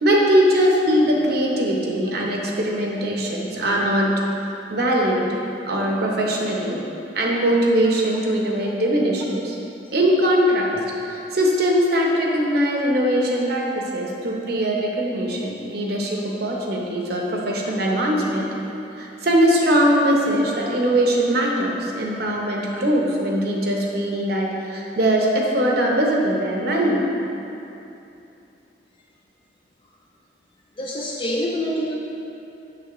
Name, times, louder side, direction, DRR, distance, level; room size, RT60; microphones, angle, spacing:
voice 1, 0.0-4.1 4.7-6.8 7.1-9.6 9.9-10.8 11.0-18.5 19.0-27.0, equal, 65° right, -1 dB, 1.0 m, -21 dB
voice 2, 30.8-32.0, equal, 30° left, -3 dB, 0.5 m, -26 dB
6.9 x 6.8 x 3.1 m, 2.8 s
head